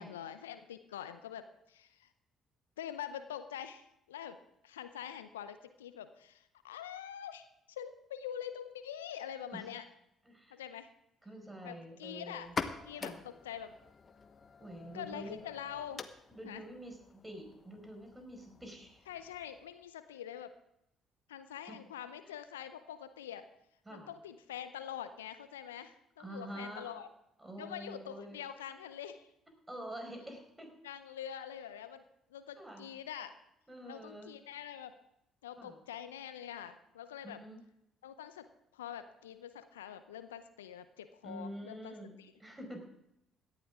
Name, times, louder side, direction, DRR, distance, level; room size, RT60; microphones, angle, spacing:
voice 1, 0.0-2.1 2.8-9.8 10.5-10.9 11.6-12.5 12.9-13.7 14.9-16.0 16.4-16.6 19.1-20.5 21.3-23.5 23.9-27.1 27.6-29.3 30.8-32.0 32.3-33.3 33.9-34.9 35.4-37.4 38.0-38.5 38.7-42.3, left 9 dB, 85° left, 11 dB, 0.6 m, -45 dB
voice 2, 10.3-10.6 11.2-12.5 12.9-13.2 14.6-15.4 16.3-19.0 21.7-21.8 23.8-24.1 26.2-26.9 27.4-28.4 29.7-30.7 32.6-32.9 33.7-34.3 35.6-35.8 37.2-37.6 41.2-42.1 42.4-42.8, right 1 dB, 15° right, 4 dB, 5.0 m, -47 dB
sound 1, 12.4-19.8, left 5 dB, 40° left, 1.1 m, -46 dB
17.5 x 11.5 x 3.6 m, 0.81 s
hypercardioid pair, 50°, 0 cm